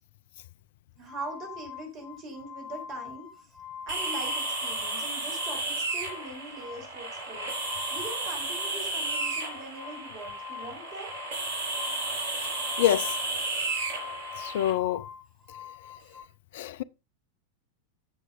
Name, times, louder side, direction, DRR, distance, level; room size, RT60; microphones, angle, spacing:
sound 1, 1.0-5.0 5.3-16.2, left 7 dB, 5° left, 5.0 m, -44 dB
voice 1, 1.0-3.3 3.9-7.5 7.9-11.1, right 2 dB, 35° right, 3.5 m, -41 dB
sound 2, 3.9-14.7, right 2 dB, 55° right, 4.5 m, -33 dB
voice 2, 12.8-13.1 14.4-15.1 16.5-16.8, left 12 dB, 55° left, 0.4 m, -26 dB
15.0 x 6.2 x 2.5 m
figure-of-eight pair, 90°, 0 cm